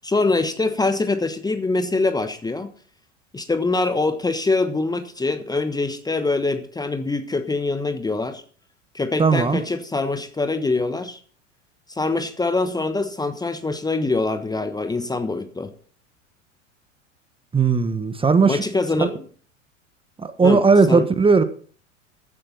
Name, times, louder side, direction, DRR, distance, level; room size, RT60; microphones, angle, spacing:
voice 1, 0.0-2.7 3.3-8.4 8.9-11.2 11.9-15.7 18.5-19.2 20.4-20.6 20.9-21.1, left 3 dB, 10° left, 9 dB, 1.2 m, -24 dB
voice 2, 9.2-9.6 17.5-18.6 19.0-19.1 20.2-21.4, right 4 dB, 15° right, 11 dB, 1.3 m, -17 dB
16.0 x 12.0 x 4.1 m, 0.44 s
figure-of-eight pair, 85°, 38 cm